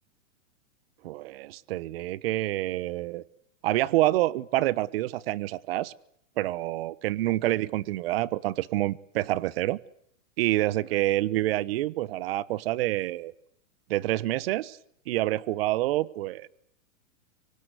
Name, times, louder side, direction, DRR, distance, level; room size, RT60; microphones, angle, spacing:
voice 1, 1.0-3.2 3.6-5.9 6.4-9.8 10.4-13.3 13.9-14.8 15.1-16.5, right 16 dB, 45° right, 20 dB, 1.2 m, -27 dB
25.5 x 24.0 x 8.2 m, 0.68 s
hypercardioid pair, 155°, 40 cm